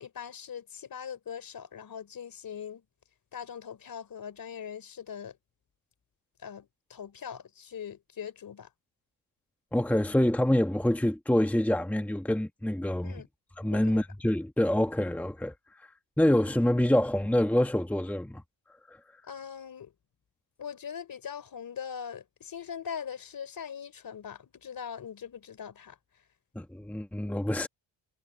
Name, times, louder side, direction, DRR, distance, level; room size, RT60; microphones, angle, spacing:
voice 1, 0.0-2.8 3.3-5.4 6.4-8.7 13.0-13.3 13.7-14.0 19.2-19.9 20.6-26.0, left 7 dB, 45° left, 3.7 m, -41 dB
voice 2, 9.7-13.1 13.6-15.5 16.2-18.4 18.9-19.0 26.5-27.7, left 1 dB, 5° left, 1.3 m, -26 dB
cardioid pair, 115°, 47 cm